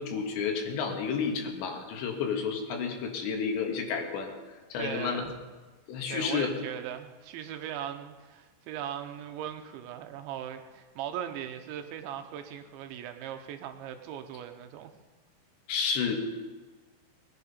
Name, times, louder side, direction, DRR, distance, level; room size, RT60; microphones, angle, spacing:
voice 1, 0.0-4.3 4.7-5.2 5.9-6.5 15.7-16.2, left 6 dB, 75° left, 2 dB, 3.9 m, -31 dB
voice 2, 4.8-5.3 6.1-14.9, right 10 dB, 85° right, 7 dB, 3.3 m, -39 dB
20.5 x 10.5 x 5.5 m, 1.3 s
omnidirectional pair, 5.2 m